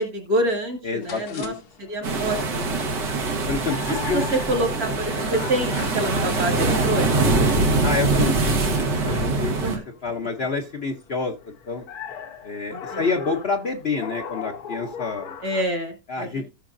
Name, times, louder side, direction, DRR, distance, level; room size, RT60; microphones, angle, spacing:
voice 1, 0.0-2.6 3.0-3.4 3.9-7.4 9.6-9.8 12.7-13.0 15.4-16.3, right 1 dB, 60° right, 5 dB, 2.6 m, -27 dB
voice 2, 0.8-1.6 3.5-4.2 7.8-9.7 10.0-11.8 12.4-15.4 16.1-16.5, left 4 dB, 45° left, 3 dB, 0.9 m, -28 dB
sound 1, 1.0-15.6, left 7 dB, 65° left, 1.4 m, -39 dB
sound 2, 2.0-9.8, right 3 dB, 80° right, 2.2 m, -23 dB
16.5 x 6.2 x 2.5 m, 0.27 s
omnidirectional pair, 1.8 m